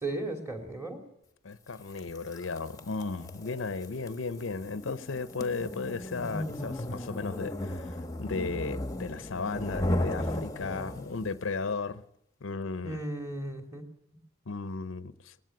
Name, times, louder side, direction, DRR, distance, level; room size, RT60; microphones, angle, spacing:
voice 1, 0.0-1.0 12.8-13.9, right 2 dB, 15° right, 3.0 m, -35 dB
voice 2, 1.4-12.0 12.4-13.0 14.5-15.3, left 4 dB, 75° left, 0.7 m, -35 dB
sound 1, 2.0-11.3, left 1 dB, 15° left, 1.1 m, -35 dB
19.0 x 15.5 x 9.4 m
head